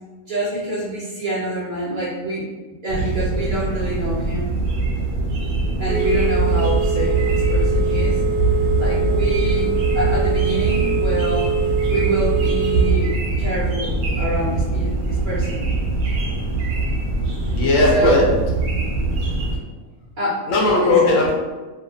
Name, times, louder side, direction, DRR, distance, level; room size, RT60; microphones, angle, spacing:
voice 1, 0.3-2.4 2.8-4.5 5.8-8.2 8.8-11.6 11.9-15.6 17.9-18.2 20.2-20.5 20.8-21.0, right 1 dB, 55° right, -8 dB, 0.6 m, -26 dB
sound 1, 2.9-19.6, right 2 dB, 90° right, 1.1 m, -23 dB
Telephone, 5.9-12.9, right 4 dB, 70° right, 1.0 m, -22 dB
voice 2, 17.5-18.3 20.5-21.3, left 2 dB, 65° left, -3 dB, 0.9 m, -16 dB
2.6 x 2.2 x 2.7 m, 1.3 s
omnidirectional pair, 1.5 m